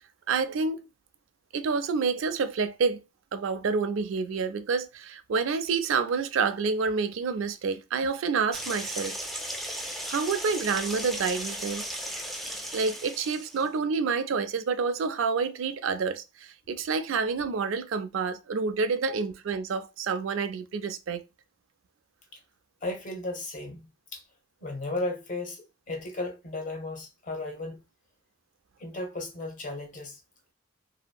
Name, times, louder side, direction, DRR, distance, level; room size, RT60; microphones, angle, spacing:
voice 1, 0.3-0.8 1.5-3.0 3.3-9.2 10.1-11.9 12.7-21.2, right 5 dB, 85° right, 0.4 m, -28 dB
sound 1, 8.5-13.6, equal, ahead, 0.4 m, -36 dB
voice 2, 22.8-24.2 24.6-27.8 28.8-30.2, left 2 dB, 40° left, 0.7 m, -35 dB
2.8 x 2.6 x 2.2 m
head